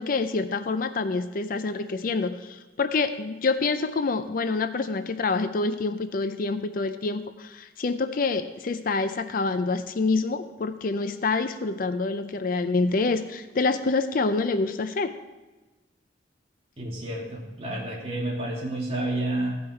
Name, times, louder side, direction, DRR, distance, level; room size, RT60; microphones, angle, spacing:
voice 1, 0.0-15.1, left 3 dB, 50° left, 10 dB, 0.5 m, -27 dB
voice 2, 16.8-19.6, right 1 dB, 35° right, -4 dB, 2.6 m, -30 dB
15.5 x 5.5 x 4.4 m, 1.1 s
head